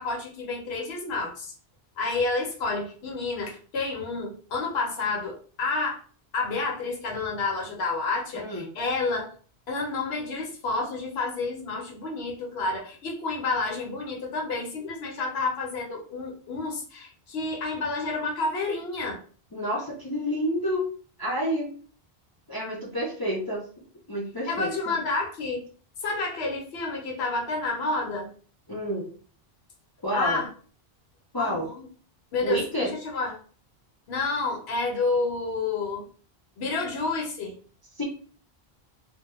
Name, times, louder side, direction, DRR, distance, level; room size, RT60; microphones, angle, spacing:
voice 1, 0.0-1.5 2.0-6.0 6.3-9.3 9.7-19.2 24.5-25.7 26.0-28.3 30.1-30.5 31.4-31.9 32.3-33.4 34.1-36.0 36.6-37.6, left 3 dB, 80° left, 0 dB, 0.9 m, -29 dB
voice 2, 8.3-8.7 19.5-20.9 21.2-21.7 22.5-23.7 24.1-24.9 28.7-29.1 30.0-30.4 31.3-31.7 32.4-32.9 38.0-38.1, equal, 35° left, -4 dB, 0.4 m, -29 dB
2.2 x 2.1 x 2.9 m, 0.42 s
omnidirectional pair, 1.1 m